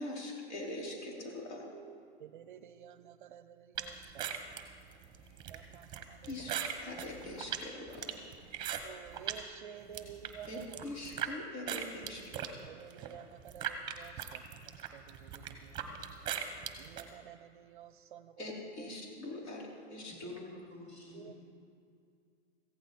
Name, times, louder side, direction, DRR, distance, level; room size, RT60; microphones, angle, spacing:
voice 1, 0.0-1.6 6.3-6.5 6.8-8.2 8.7-8.8 10.5-12.4 18.4-19.6 19.9-20.1, left 1 dB, 75° left, -3 dB, 4.7 m, -42 dB
voice 2, 1.7-4.3 5.5-6.5 8.8-10.8 11.6-11.7 12.7-14.4 14.9-15.9 16.8-18.3 18.8-18.9 21.1-21.3, right 9 dB, 45° right, 13 dB, 0.5 m, -51 dB
sound 1, 3.8-9.4 9.8-11.3 11.7-17.1, right 9 dB, 15° right, 0.9 m, -40 dB
voice 3, 18.9-19.7 20.0-21.4, left 2 dB, 20° left, -3 dB, 4.3 m, -49 dB
17.0 x 15.0 x 4.3 m, 2.4 s
hypercardioid pair, 160°, 35 cm